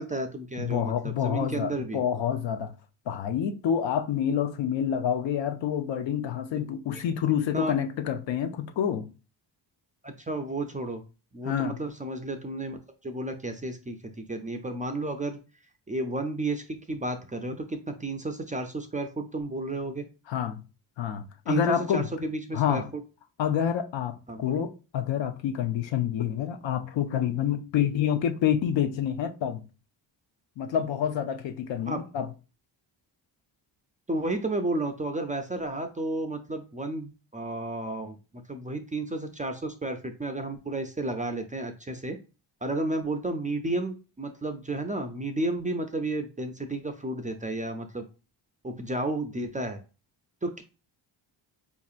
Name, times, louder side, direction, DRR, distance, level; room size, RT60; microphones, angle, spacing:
voice 1, 0.0-2.0 7.5-7.7 10.0-11.0 11.3-12.8 13.0-15.4 15.9-20.0 21.5-22.8 24.3-24.7 31.9-32.0 34.1-38.2 38.5-42.2 42.6-48.0 48.6-49.8 50.4-50.6, right 2 dB, 20° right, 0.4 m, -32 dB
voice 2, 0.6-2.7 3.1-9.1 11.4-11.8 20.3-20.6 21.0-22.0 22.5-22.9 23.4-29.6 30.6-32.3, left 9 dB, 70° left, 0.6 m, -28 dB
4.4 x 2.8 x 2.4 m
cardioid pair, 80°, 47 cm